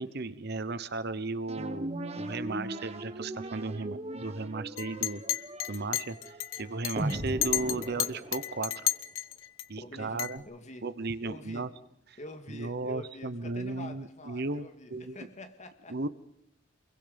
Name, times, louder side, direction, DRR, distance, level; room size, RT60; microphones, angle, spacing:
voice 1, 0.0-5.2 5.7-8.9 9.7-10.4 10.8-11.7 12.5-15.2 15.9-16.1, right 3 dB, 55° right, 1.0 m, -35 dB
sound 1, 1.5-9.0, right 1 dB, 30° right, 1.5 m, -38 dB
Chink clink, 4.8-9.6 10.2-10.4, left 12 dB, 80° left, 1.0 m, -32 dB
voice 2, 9.8-10.9 11.2-11.8 12.2-16.1, left 1 dB, 35° left, 2.0 m, -46 dB
28.0 x 22.5 x 5.3 m
head